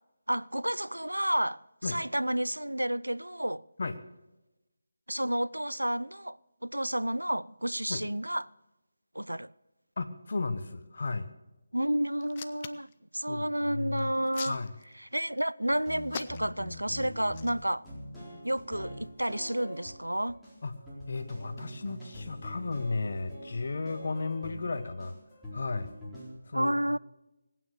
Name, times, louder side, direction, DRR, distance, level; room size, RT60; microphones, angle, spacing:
voice 1, 0.3-3.6 5.1-8.5 9.1-9.5 11.7-12.9 13.1-14.6 15.1-17.9 18.4-20.4 26.5-27.0, right 1 dB, 90° right, 0.4 m, -31 dB
voice 2, 10.0-11.3 13.3-14.1 14.5-14.7 20.6-20.7 21.1-25.2 25.5-25.9 26.5-27.0, left 3 dB, 55° left, 1.3 m, -34 dB
Hands, 12.2-12.9 14.0-15.1 16.1-16.7 17.3-17.5, left 7 dB, 30° left, 0.6 m, -41 dB
sound 1, 15.7-26.3, left 1 dB, ahead, 4.0 m, -44 dB
18.5 x 9.0 x 6.7 m
figure-of-eight pair, 155°, 0 cm